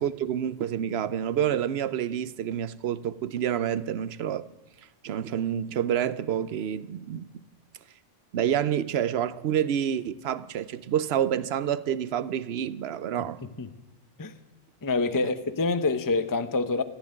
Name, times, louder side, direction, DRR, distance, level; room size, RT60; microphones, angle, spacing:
voice 1, 0.0-4.5 5.0-7.4 8.3-13.4, right 9 dB, 65° right, 0.9 m, -28 dB
voice 2, 14.8-16.8, left 3 dB, 20° left, 0.7 m, -26 dB
14.5 x 10.0 x 8.9 m
omnidirectional pair, 1.2 m